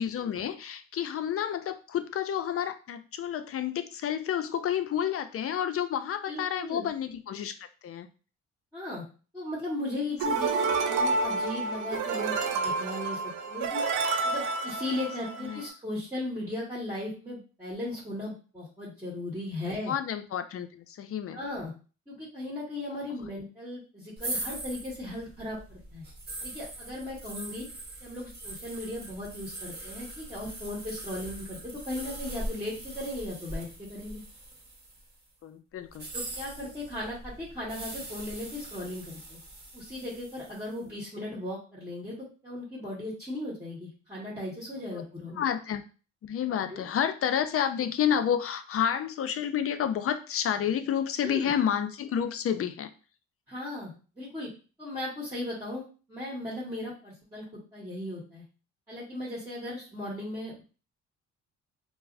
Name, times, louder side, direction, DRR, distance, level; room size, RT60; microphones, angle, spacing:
voice 1, 0.0-8.1 15.4-15.6 19.9-21.4 35.4-36.1 44.9-45.0 45.4-45.8 46.2-52.9, left 9 dB, 50° left, 10 dB, 0.5 m, -30 dB
voice 2, 6.3-6.9 8.7-9.0 9.3-13.2 13.5-13.8 14.2-19.9 21.3-21.7 22.1-26.0 26.4-27.6 28.0-31.6 31.8-34.2 36.1-39.4 39.7-42.1 42.4-45.4 46.7-46.9 51.2-51.5 53.5-54.5 54.8-55.8 56.1-57.4 57.7-58.4 58.9-60.6, left 1 dB, 10° right, -8 dB, 1.6 m, -37 dB
sound 1, 10.2-15.7, right 3 dB, 80° right, 0.5 m, -29 dB
sound 2, 24.2-35.1 35.9-40.7, right 1 dB, 35° right, 1.1 m, -41 dB
4.6 x 2.0 x 2.6 m, 0.36 s
cardioid pair, 90°, 30 cm